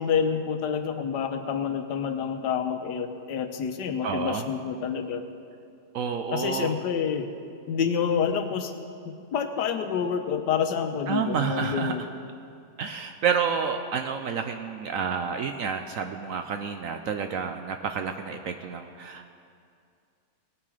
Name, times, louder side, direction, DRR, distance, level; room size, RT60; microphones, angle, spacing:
voice 1, 0.0-5.2 6.3-7.3 7.7-8.7 9.3-12.0, left 7 dB, 80° left, 7 dB, 1.4 m, -28 dB
voice 2, 4.0-4.5 5.9-6.7 11.1-12.1 12.8-19.3, right 6 dB, 70° right, 7 dB, 0.8 m, -29 dB
17.5 x 9.1 x 4.9 m, 2.4 s
omnidirectional pair, 1.8 m